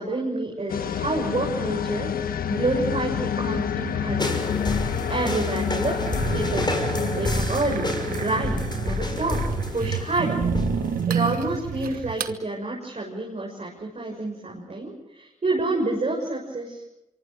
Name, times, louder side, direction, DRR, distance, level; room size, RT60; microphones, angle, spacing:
voice 1, 0.0-2.1 2.5-4.4 5.1-6.8 7.1-9.4 9.7-10.4 11.1-16.8, right 2 dB, 45° right, -1 dB, 6.9 m, -28 dB
sound 1, 0.7-11.5, left 8 dB, 85° left, 1.6 m, -30 dB
sound 2, 4.2-11.0, left 2 dB, 30° left, 6.0 m, -29 dB
sound 3, 6.1-12.4, right 8 dB, 85° right, 1.3 m, -30 dB
24.5 x 24.0 x 6.6 m, 0.90 s
supercardioid pair, 45°, 15 cm